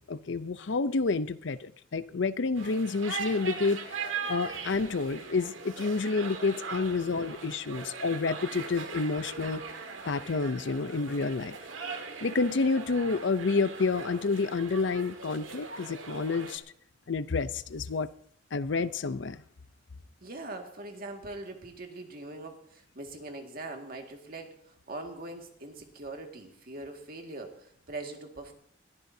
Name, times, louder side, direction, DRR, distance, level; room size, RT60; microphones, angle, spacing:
voice 1, 0.0-9.6 10.1-11.6 12.2-16.6 17.1-18.1 18.5-19.4, left 4 dB, 65° left, 14 dB, 0.6 m, -29 dB
sound 1, 2.5-16.6, right 5 dB, 85° right, 1.7 m, -40 dB
voice 2, 20.2-28.5, right 2 dB, 50° right, 3 dB, 2.0 m, -42 dB
21.0 x 14.5 x 2.8 m, 0.67 s
head